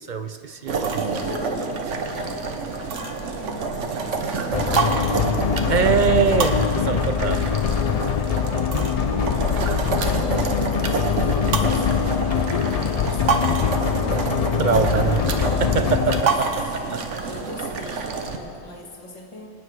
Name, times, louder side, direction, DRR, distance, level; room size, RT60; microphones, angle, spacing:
voice 1, 0.0-1.3 5.7-7.5 14.6-17.0, right 6 dB, 55° right, 9 dB, 0.5 m, -24 dB
sound 1, 0.7-18.4, right 4 dB, 90° right, 1.3 m, -27 dB
voice 2, 0.8-5.0 9.4-13.7 14.8-16.3 16.6-19.5, left 2 dB, 25° left, -2 dB, 1.7 m, -41 dB
sound 2, 4.5-16.2, left 8 dB, 65° left, 0.3 m, -23 dB
25.0 x 9.6 x 4.8 m, 2.8 s
omnidirectional pair, 1.2 m